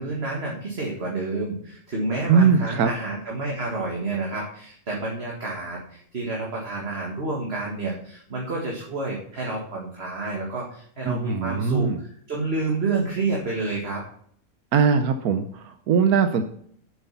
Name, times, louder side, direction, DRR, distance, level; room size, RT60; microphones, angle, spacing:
voice 1, 0.0-14.0, right 3 dB, 45° right, -2 dB, 2.0 m, -29 dB
voice 2, 2.3-2.9 11.0-12.0 14.7-16.4, right 6 dB, 80° right, 8 dB, 1.2 m, -20 dB
8.1 x 7.6 x 5.7 m, 0.62 s
omnidirectional pair, 1.5 m